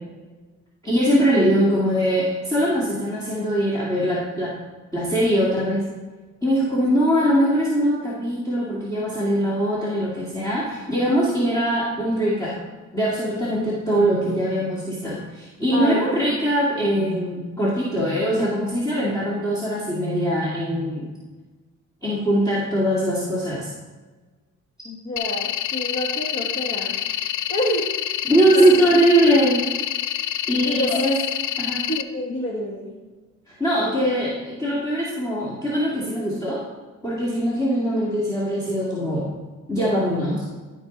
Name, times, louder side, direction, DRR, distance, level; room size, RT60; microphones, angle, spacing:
voice 1, 0.8-4.5 4.9-5.9 6.4-12.6 12.9-21.1 22.0-23.7 28.2-29.6 30.5-31.1 31.6-31.8 33.5-36.6 37.0-39.3 39.7-40.5, equal, 10° left, -7 dB, 2.2 m, -21 dB
voice 2, 15.7-16.1 24.8-27.0 27.5-27.9 28.5-28.7 30.5-31.0 31.9-33.0, equal, 40° left, -4 dB, 1.6 m, -28 dB
sound 1, 25.2-32.0, left 12 dB, 85° left, 0.5 m, -27 dB
13.0 x 4.8 x 3.9 m, 1.3 s
cardioid pair, 90°, 30 cm